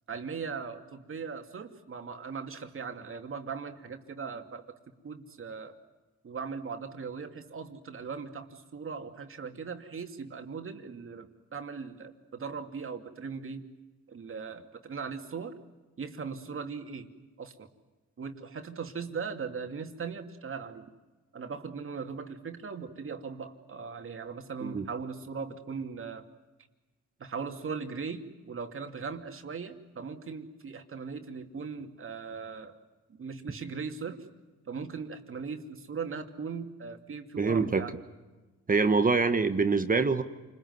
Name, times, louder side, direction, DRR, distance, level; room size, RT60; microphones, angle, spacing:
voice 1, 0.1-4.6 5.0-5.7 6.2-13.7 14.1-15.5 16.0-17.1 17.4-17.7 18.2-20.9 21.3-26.2 27.2-32.7 33.1-34.2 34.7-38.0 38.9-39.1, right 5 dB, 45° right, 5 dB, 2.7 m, -39 dB
voice 2, 37.4-37.9 38.7-40.2, right 4 dB, 30° right, 9 dB, 1.5 m, -25 dB
28.5 x 21.5 x 9.6 m, 1.2 s
cardioid pair, 90°, 30 cm